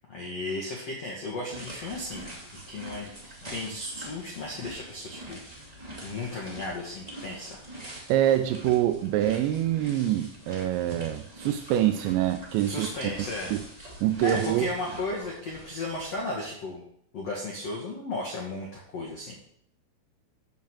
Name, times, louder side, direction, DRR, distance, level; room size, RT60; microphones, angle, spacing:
voice 1, 0.1-5.7 6.0-7.6 12.7-13.5 14.2-16.8 17.1-19.4, left 2 dB, 90° left, -2 dB, 1.4 m, -35 dB
sound 1, 1.5-16.4, right 1 dB, 25° right, 0.8 m, -44 dB
voice 2, 8.1-12.9 13.5-13.6 14.0-14.7, right 12 dB, 85° right, 8 dB, 2.6 m, -25 dB
9.4 x 5.0 x 7.4 m, 0.71 s
omnidirectional pair, 5.5 m